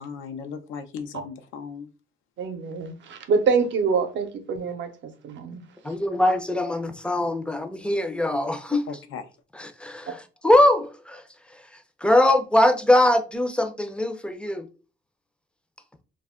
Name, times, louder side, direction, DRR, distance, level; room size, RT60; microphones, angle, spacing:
voice 1, 0.0-1.9 8.9-9.2, left 6 dB, 85° left, 0.5 m, -36 dB
voice 2, 2.4-5.6, right 5 dB, 70° right, 0.6 m, -25 dB
voice 3, 5.8-8.8 9.5-11.2 12.0-14.7, left 1 dB, 5° left, 0.4 m, -22 dB
2.3 x 2.1 x 3.5 m
cardioid pair, 90°, 20 cm